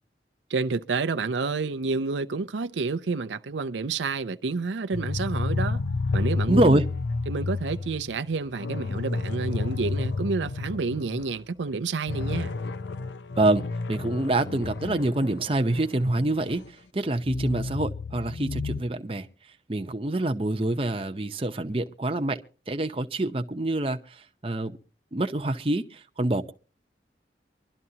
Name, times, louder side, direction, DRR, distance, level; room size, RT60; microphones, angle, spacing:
voice 1, 0.5-5.8 6.1-6.8 7.3-12.5, right 4 dB, 90° right, 0.6 m, -29 dB
sound 1, 4.9-11.4 11.7-11.8 12.1-16.7 17.2-18.8, left 3 dB, 80° left, 0.6 m, -31 dB
voice 2, 6.5-6.8 13.4-16.6 16.9-19.3 19.7-22.4 22.7-24.0 24.4-24.7 25.1-26.5, right 1 dB, 30° right, 0.8 m, -26 dB
24.0 x 12.0 x 2.8 m
head